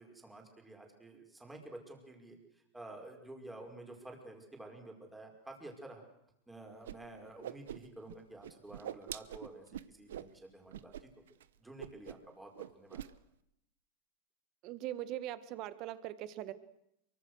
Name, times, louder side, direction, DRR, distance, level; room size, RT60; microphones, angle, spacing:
voice 1, 0.0-2.4 2.7-6.0 6.5-11.1 11.6-13.0, right 2 dB, 5° right, 2 dB, 5.3 m, -51 dB
Whoosh swoosh swish, 6.8-7.0 7.2-8.2 8.4-10.3 10.7-11.0 11.3-11.4 11.8-12.3 12.6-13.1, right 11 dB, 85° right, 0.9 m, -44 dB
voice 2, 14.6-16.5, right 13 dB, 45° right, 14 dB, 1.5 m, -41 dB
24.0 x 23.0 x 6.4 m, 0.78 s
supercardioid pair, 125°, 0 cm